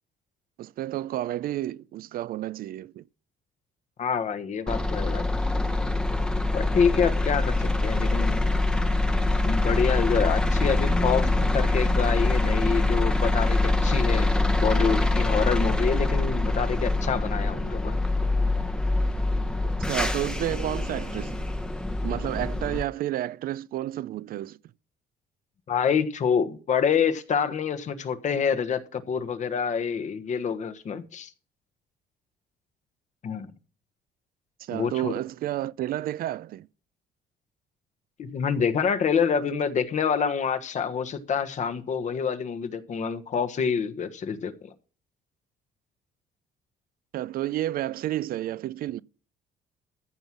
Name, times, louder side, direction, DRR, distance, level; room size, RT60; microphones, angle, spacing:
voice 1, 0.6-3.0 19.6-21.5 22.0-24.6 34.6-36.7 47.1-49.0, right 13 dB, 60° right, 0.5 m, -31 dB
voice 2, 4.0-5.3 6.5-8.5 9.4-18.0 25.7-31.3 33.2-33.5 34.7-35.1 38.2-44.7, left 6 dB, 45° left, 1.3 m, -27 dB
sound 1, 4.7-22.8, left 2 dB, 5° left, 1.0 m, -24 dB
14.5 x 5.6 x 6.1 m
cardioid pair, 110°, 17 cm